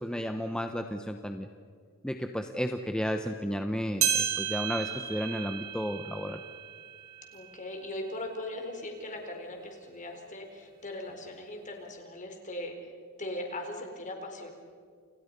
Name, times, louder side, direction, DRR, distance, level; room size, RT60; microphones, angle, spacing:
voice 1, 0.0-1.5 2.0-6.4, equal, 5° left, 5 dB, 0.9 m, -33 dB
sound 1, 4.0-8.7 9.2-9.3 10.1-10.2 11.1-11.2, right 9 dB, 70° right, 5.0 m, -34 dB
voice 2, 7.3-12.7 13.2-14.5, left 1 dB, 35° left, 3 dB, 4.2 m, -39 dB
30.0 x 29.0 x 5.4 m, 2.1 s
head